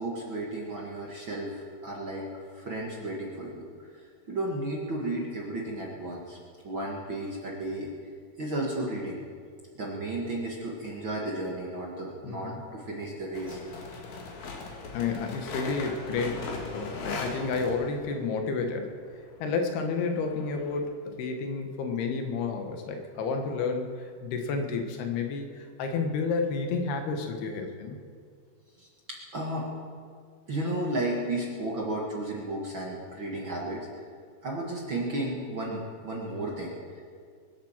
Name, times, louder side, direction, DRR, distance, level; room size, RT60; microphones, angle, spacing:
voice 1, 0.0-2.3 2.5-3.6 4.3-6.4 6.6-7.9 8.4-9.2 9.8-13.6 28.8-29.7 30.5-33.9 34.4-37.0, right 1 dB, 45° right, -3 dB, 1.7 m, -33 dB
voice 2, 12.2-12.6 14.9-18.9 19.4-28.0, left 4 dB, 85° left, 4 dB, 3.4 m, -31 dB
sound 1, 13.3-18.3 19.3-20.8, left 3 dB, 65° left, 3.5 m, -39 dB
23.0 x 7.9 x 7.4 m, 2.1 s
omnidirectional pair, 4.4 m